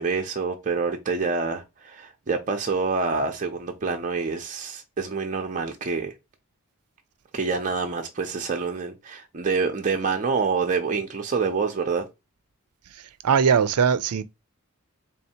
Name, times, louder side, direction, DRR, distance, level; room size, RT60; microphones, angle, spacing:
voice 1, 0.0-6.1 7.3-12.0, right 4 dB, 35° right, 0.5 m, -27 dB
voice 2, 12.9-14.2, right 6 dB, 80° right, 0.4 m, -21 dB
3.5 x 2.7 x 4.2 m
head